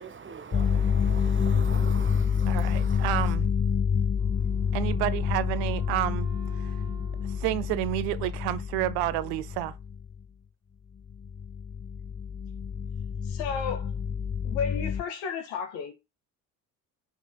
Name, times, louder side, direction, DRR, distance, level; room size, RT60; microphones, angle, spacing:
voice 1, 0.0-3.3, right 5 dB, 25° right, 1.2 m, -41 dB
sound 1, 0.5-10.2 11.1-15.0, left 7 dB, 20° left, 0.7 m, -28 dB
voice 2, 2.4-3.5 4.7-6.3 6.6-6.7 7.3-9.7, right 16 dB, 70° right, 0.8 m, -30 dB
Wind instrument woodwind instrument, 4.2-8.6, right 10 dB, 85° right, 1.8 m, -51 dB
voice 3, 13.2-13.9 14.4-15.9, left 6 dB, 70° left, 2.1 m, -32 dB
6.0 x 5.7 x 3.9 m
hypercardioid pair, 55°, 47 cm